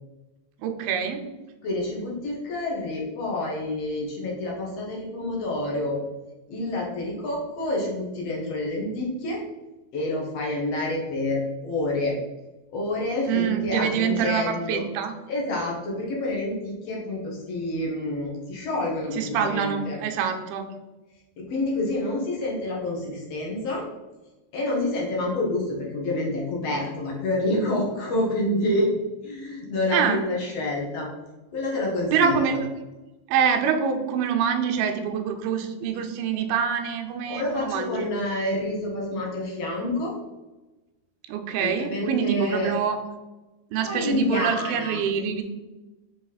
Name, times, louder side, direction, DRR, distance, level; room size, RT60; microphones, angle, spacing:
voice 1, 0.6-1.3 13.3-15.1 19.2-20.6 29.9-30.2 32.1-32.7 33.3-38.1 41.3-43.0 43.7-45.4, right 7 dB, 85° right, 5 dB, 2.5 m, -25 dB
voice 2, 1.6-6.0 6.5-9.4 9.9-12.1 12.7-14.8 15.3-20.0 21.4-23.8 24.5-28.9 29.2-31.1 31.5-32.6 37.3-40.1 41.6-42.7 43.9-45.0, left 1 dB, 55° left, -2 dB, 1.9 m, -28 dB
6.4 x 5.0 x 4.1 m, 1.1 s
omnidirectional pair, 4.3 m